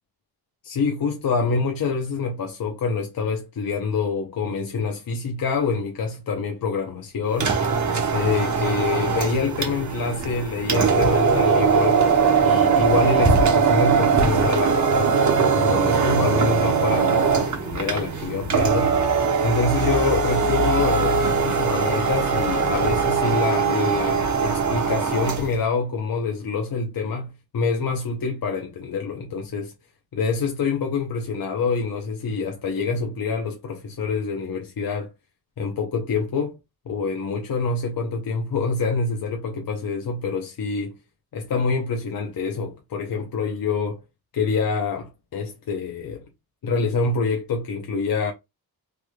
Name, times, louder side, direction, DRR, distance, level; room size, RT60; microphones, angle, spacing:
voice 1, 0.6-7.5 8.1-12.0 12.4-19.0 19.4-29.7 30.1-35.1 35.6-36.6 36.9-40.9 41.3-44.0 44.3-46.2 46.6-48.3, left 4 dB, 60° left, 0.7 m, -26 dB
sound 1, 7.3-25.6, right 5 dB, 45° right, 1.0 m, -21 dB
3.2 x 3.2 x 2.2 m
wide cardioid pair, 105°, 39 cm